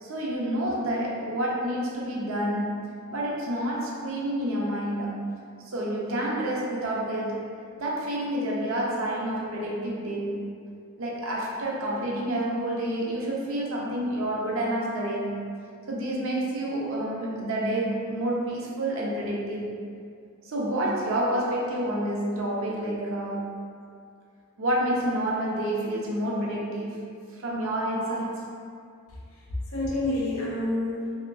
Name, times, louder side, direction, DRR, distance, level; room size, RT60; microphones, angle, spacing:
voice 1, 0.0-5.2 5.6-7.4 7.8-10.4 11.0-15.4 15.9-19.8 20.4-23.5 24.6-27.0 27.3-28.4, right 1 dB, 70° right, -3 dB, 0.6 m, -29 dB
voice 2, 29.1-31.1, left 2 dB, 85° left, -6 dB, 0.7 m, -29 dB
2.9 x 2.8 x 2.5 m, 2.3 s
head